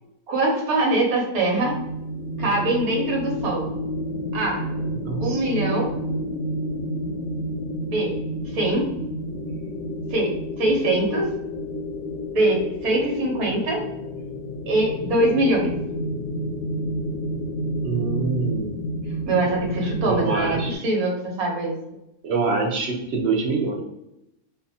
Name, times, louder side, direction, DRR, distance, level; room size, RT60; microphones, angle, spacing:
voice 1, 0.3-1.8 2.4-3.7 4.3-4.7 5.2-5.9 7.9-8.2 8.5-8.9 10.1-11.3 12.3-13.9 14.7-15.7 19.3-21.8, right 1 dB, 70° right, -1 dB, 1.2 m, -23 dB
sound 1, 1.6-20.8, equal, 80° left, 1.1 m, -30 dB
voice 2, 5.1-5.4 17.8-18.7 20.0-20.8 22.2-23.8, right 4 dB, 85° right, 1 dB, 0.5 m, -25 dB
2.6 x 2.4 x 2.6 m, 0.85 s
omnidirectional pair, 1.7 m